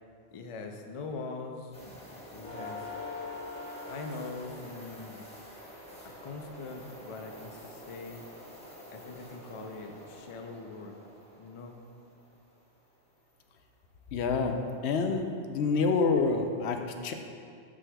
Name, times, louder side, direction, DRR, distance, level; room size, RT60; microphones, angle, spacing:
voice 1, 0.3-2.9 3.8-5.2 6.2-8.3 8.9-10.9 11.4-11.8, left 3 dB, 45° left, 3 dB, 0.4 m, -42 dB
sound 1, 1.7-12.3 14.4-14.5 15.0-15.2, left 2 dB, 5° left, 1.0 m, -45 dB
voice 2, 14.1-14.6 14.8-17.1, left 4 dB, 80° left, 5 dB, 0.8 m, -27 dB
9.6 x 6.3 x 2.3 m, 2.3 s
omnidirectional pair, 1.1 m